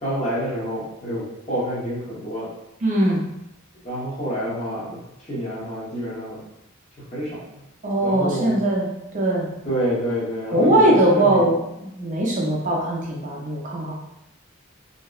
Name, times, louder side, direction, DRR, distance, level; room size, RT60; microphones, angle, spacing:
voice 1, 0.0-2.5 3.8-5.0 5.3-6.4 7.0-7.4 8.0-8.6 9.6-11.4, equal, 30° left, -8 dB, 0.9 m, -27 dB
voice 2, 2.8-3.2 7.8-8.9 9.1-9.5 10.5-13.9, right 1 dB, 35° right, -3 dB, 0.5 m, -20 dB
2.7 x 2.0 x 2.3 m, 0.86 s
head